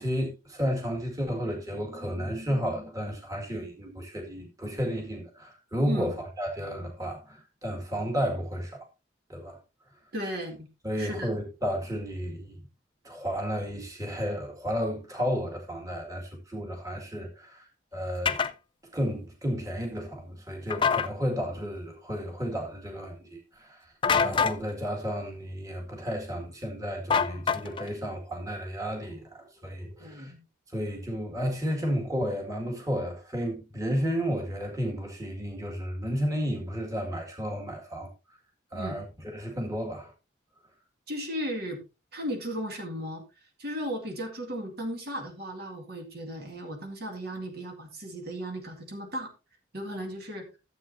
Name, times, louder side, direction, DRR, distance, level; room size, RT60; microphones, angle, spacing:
voice 1, 0.0-8.8 9.3-9.6 10.8-12.6 13.0-18.4 18.9-23.9 24.1-30.3 30.7-38.1 38.7-40.1, equal, 15° right, 2.0 m, -32 dB
voice 2, 10.1-10.7 11.0-11.3 30.0-30.4 38.7-39.0 41.1-41.8 42.1-43.2 43.6-49.3 49.7-50.5, equal, 55° right, 2.1 m, -35 dB
sound 1, 18.3-18.5 20.7-21.1 24.0-24.6 27.1-27.9, left 6 dB, 25° left, 0.4 m, -25 dB
13.5 x 8.0 x 2.7 m
head